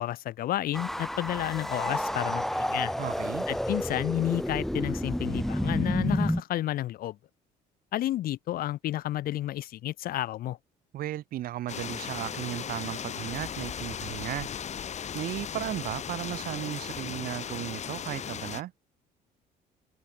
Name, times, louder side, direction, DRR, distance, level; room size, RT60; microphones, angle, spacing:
voice 1, 0.0-2.9 3.5-7.2 7.9-10.6, left 14 dB, 60° left, 0.6 m, -31 dB
sound 1, 0.7-6.4, equal, ahead, 0.6 m, -30 dB
voice 2, 3.0-3.5 10.9-14.5 15.1-18.7, right 13 dB, 60° right, 0.7 m, -35 dB
sound 2, 11.7-18.6, left 8 dB, 40° left, 1.9 m, -37 dB
cardioid pair, 110°, 17 cm